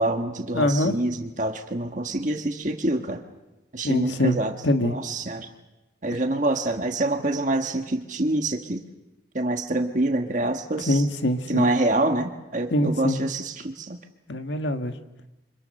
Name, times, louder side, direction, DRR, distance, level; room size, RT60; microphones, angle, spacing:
voice 1, 0.0-3.2 3.7-4.5 4.8-5.5 6.0-8.8 9.3-11.0 11.5-14.0, right 2 dB, 45° right, 4 dB, 1.5 m, -26 dB
voice 2, 0.5-0.9 3.8-4.4 4.6-4.9 10.9-11.7 12.7-13.2 14.3-14.9, left 1 dB, 80° left, 7 dB, 1.7 m, -23 dB
29.5 x 25.5 x 6.6 m, 1.0 s
head